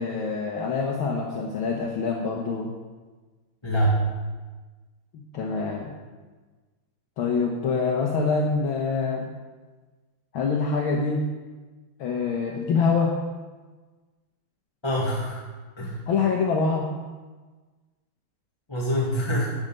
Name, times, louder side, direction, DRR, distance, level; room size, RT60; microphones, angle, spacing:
voice 1, 0.0-2.7 5.3-5.9 7.2-9.3 10.3-11.2 12.0-13.1 16.1-16.9, left 4 dB, 70° left, -1 dB, 2.0 m, -25 dB
voice 2, 3.6-4.1 14.8-15.5 15.8-16.0 18.7-19.5, right 1 dB, 15° left, -4 dB, 1.7 m, -25 dB
9.8 x 6.6 x 9.0 m, 1.3 s
omnidirectional pair, 2.3 m